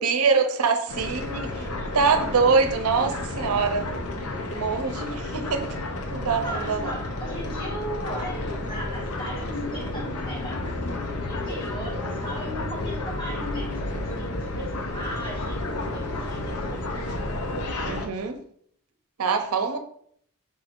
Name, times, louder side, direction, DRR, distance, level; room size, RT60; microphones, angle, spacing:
voice 1, 0.0-1.7 1.9-3.9 4.5-5.8 6.1-7.0 17.8-18.4 19.2-19.8, right 5 dB, 75° right, 7 dB, 0.6 m, -24 dB
sound 1, 0.9-18.1, left 2 dB, 80° left, 0.6 m, -31 dB
voice 2, 1.5-1.9 6.4-16.8, equal, 20° left, -7 dB, 1.9 m, -37 dB
4.9 x 4.3 x 2.5 m, 0.65 s
head